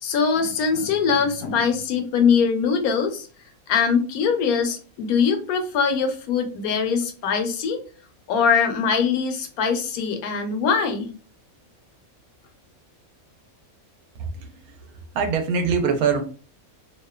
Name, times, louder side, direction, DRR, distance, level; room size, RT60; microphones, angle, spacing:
voice 1, 0.0-3.3 3.7-7.8 8.3-11.1, left 6 dB, 85° left, 1.1 m, -22 dB
voice 2, 14.2-16.2, right 5 dB, 85° right, 1.0 m, -24 dB
2.7 x 2.1 x 2.2 m
omnidirectional pair, 1.5 m